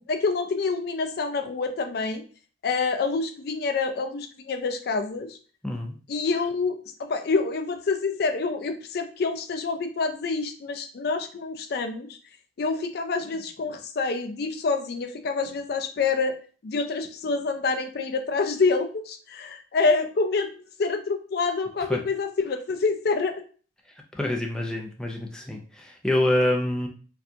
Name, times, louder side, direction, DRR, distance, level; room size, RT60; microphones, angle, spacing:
voice 1, 0.0-2.2 2.6-5.4 6.1-12.2 12.6-16.4 16.6-23.4, left 4 dB, 60° left, 7 dB, 0.4 m, -27 dB
voice 2, 5.6-5.9 21.9-22.0 24.1-26.9, left 1 dB, 5° left, 0 dB, 0.5 m, -26 dB
4.5 x 2.4 x 2.7 m, 0.40 s
head